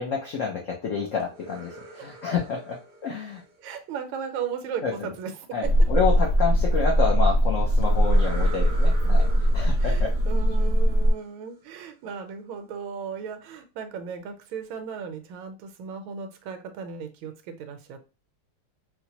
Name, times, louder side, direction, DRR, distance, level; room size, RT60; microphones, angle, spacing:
voice 1, 0.0-3.4 4.8-4.9 5.5-9.3 9.5-10.1, left 5 dB, 85° left, 0 dB, 0.6 m, -29 dB
sound 1, 1.2-4.2 7.8-11.5, right 3 dB, 50° right, 0.8 m, -44 dB
voice 2, 3.6-5.9 9.8-18.0, right 6 dB, 85° right, 7 dB, 1.4 m, -36 dB
sound 2, 5.6-11.1, equal, 50° left, 1.2 m, -20 dB
4.3 x 2.1 x 2.8 m, 0.31 s
omnidirectional pair, 2.2 m